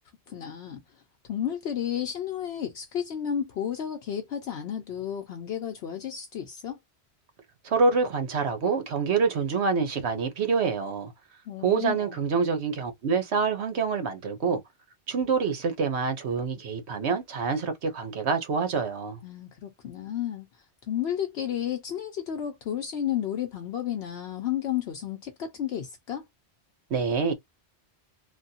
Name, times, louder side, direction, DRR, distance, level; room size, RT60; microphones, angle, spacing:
voice 1, 0.3-0.8 1.3-6.8 11.5-12.2 19.2-20.5 20.9-26.2, left 9 dB, 70° left, 0.9 m, -32 dB
voice 2, 7.6-11.1 11.6-14.6 15.1-19.2 26.9-27.3, right 5 dB, 75° right, 1.2 m, -26 dB
3.1 x 2.3 x 2.7 m
omnidirectional pair, 1.1 m